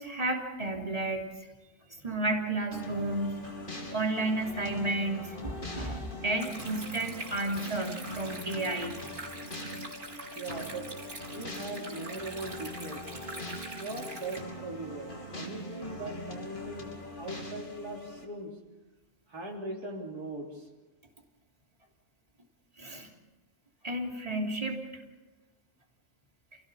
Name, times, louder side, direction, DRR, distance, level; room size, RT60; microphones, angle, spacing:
voice 1, 0.0-1.5 1.9-3.4 3.9-9.0 22.8-23.1 23.8-24.8, right 2 dB, 25° right, 1 dB, 3.2 m, -32 dB
sound 1, 2.7-18.3, left 1 dB, 30° left, 3.1 m, -42 dB
Stream, 6.4-14.4, right 2 dB, 45° right, 4.8 m, -44 dB
voice 2, 10.4-10.9 11.3-13.2 13.8-16.9 17.2-18.5 19.3-20.7 22.8-22.9, right 2 dB, 80° right, 0 dB, 4.0 m, -40 dB
29.5 x 17.0 x 7.0 m, 1.1 s
omnidirectional pair, 1.6 m